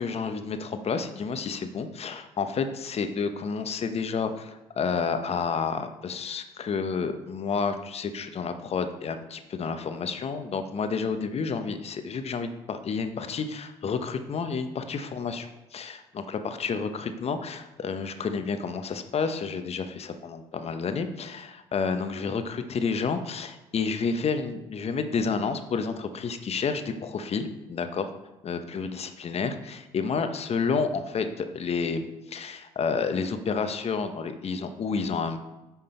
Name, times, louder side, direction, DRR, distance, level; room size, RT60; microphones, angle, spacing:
voice 1, 0.0-28.1 28.4-35.4, left 5 dB, 45° left, 8 dB, 0.9 m, -30 dB
10.0 x 3.7 x 4.4 m, 1.0 s
hypercardioid pair, 55°, 15 cm